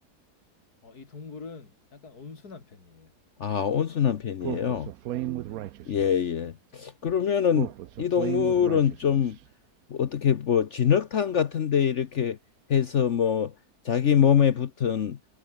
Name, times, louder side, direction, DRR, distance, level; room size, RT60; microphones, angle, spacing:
voice 1, 0.8-3.1 5.5-5.6, left 4 dB, 80° left, 3.4 m, -44 dB
voice 2, 3.4-4.9 5.9-7.7 8.0-9.4 9.9-12.4 12.7-13.5 13.8-15.2, left 8 dB, 55° left, 1.1 m, -24 dB
Speech, 4.4-6.2 7.5-9.3, right 13 dB, 70° right, 1.1 m, -34 dB
omnidirectional pair, 1.6 m